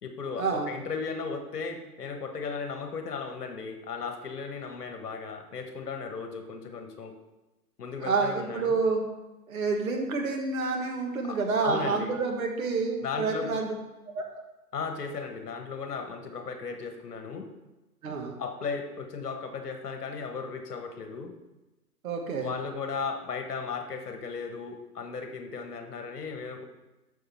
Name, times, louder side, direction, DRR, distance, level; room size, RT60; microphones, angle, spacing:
voice 1, 0.0-7.1 7.8-8.8 11.2-12.1 13.0-13.6 14.7-17.5 18.4-21.3 22.4-26.6, left 5 dB, 70° left, 5 dB, 1.3 m, -36 dB
voice 2, 8.0-9.0 9.5-13.7 14.1-14.3 18.0-18.4 22.0-22.5, right 4 dB, 60° right, 2 dB, 1.6 m, -28 dB
6.5 x 6.4 x 4.3 m, 1.0 s
figure-of-eight pair, 125°, 48 cm